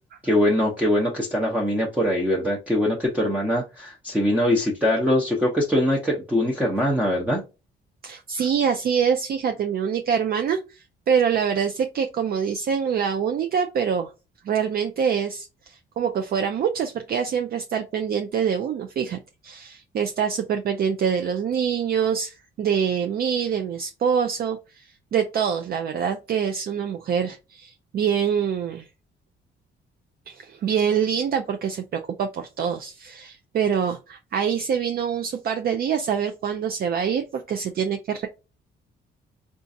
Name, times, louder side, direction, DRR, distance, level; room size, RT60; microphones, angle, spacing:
voice 1, 0.2-7.4, left 1 dB, 5° right, 0.7 m, -22 dB
voice 2, 8.0-14.1 14.4-19.2 19.4-28.9 30.3-38.3, right 7 dB, 50° right, 0.4 m, -25 dB
3.8 x 2.4 x 2.6 m
cardioid pair, 90°, 20 cm